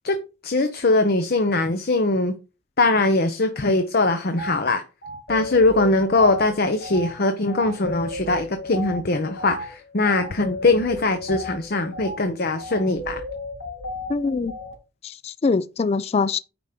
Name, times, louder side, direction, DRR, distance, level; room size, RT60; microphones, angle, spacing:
voice 1, 0.4-2.3 2.8-4.8 5.3-13.2, left 2 dB, 50° left, 0.8 m, -21 dB
sound 1, 4.4-4.6 5.0-14.7, left 1 dB, 75° left, 3.1 m, -35 dB
voice 2, 14.1-14.6 15.0-16.4, left 4 dB, 30° left, 0.3 m, -23 dB
9.9 x 3.6 x 5.2 m
head